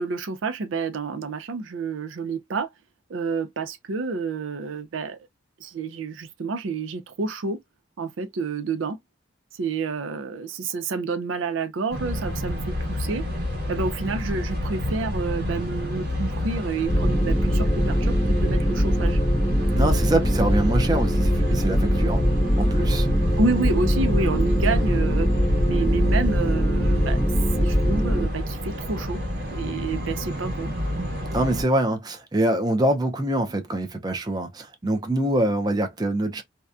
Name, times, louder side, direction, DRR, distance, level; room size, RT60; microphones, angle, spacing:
voice 1, 0.0-2.7 3.1-5.2 5.6-7.6 8.0-9.0 9.5-13.4 13.7-19.2 23.3-25.3 25.7-27.3 27.6-29.2 29.5-30.7, right 4 dB, 85° right, 0.5 m, -29 dB
sound 1, 11.9-31.6, equal, 55° right, 1.2 m, -29 dB
sound 2, 16.8-28.3, equal, 5° left, 0.9 m, -22 dB
voice 2, 19.7-22.3 22.6-23.1 31.3-36.4, right 1 dB, 20° right, 0.5 m, -24 dB
2.8 x 2.1 x 2.3 m
head